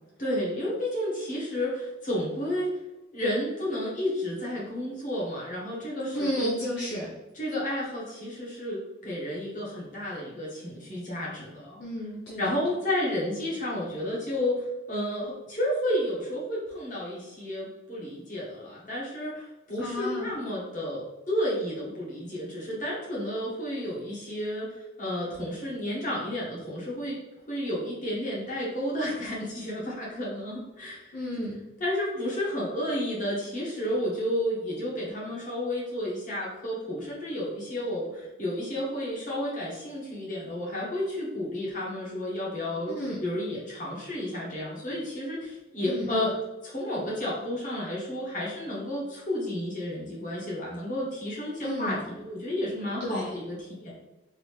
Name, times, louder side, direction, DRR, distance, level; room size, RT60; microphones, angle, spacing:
voice 1, 0.2-2.8 3.1-6.5 7.3-11.8 12.4-27.2 27.5-31.2 31.8-46.3 46.6-54.0, left 1 dB, 45° left, -5 dB, 1.4 m, -31 dB
voice 2, 6.1-7.1 11.8-12.6 19.8-20.3 31.1-31.6 42.9-43.2 45.9-46.3 51.6-52.0 53.0-53.4, left 1 dB, 60° left, -5 dB, 0.6 m, -32 dB
3.9 x 2.7 x 3.2 m, 1.0 s
head